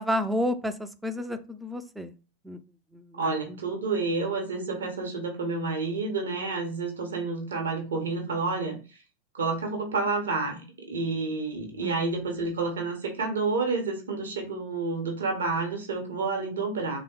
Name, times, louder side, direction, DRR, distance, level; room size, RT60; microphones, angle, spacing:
voice 1, 0.0-2.1 2.4-2.6 2.9-3.6 11.8-12.1, equal, 5° right, 10 dB, 0.3 m, -31 dB
voice 2, 3.2-9.0 9.3-17.0, right 3 dB, 65° right, 2 dB, 0.7 m, -29 dB
3.3 x 2.0 x 2.8 m, 0.34 s
figure-of-eight pair, 90°, 0 cm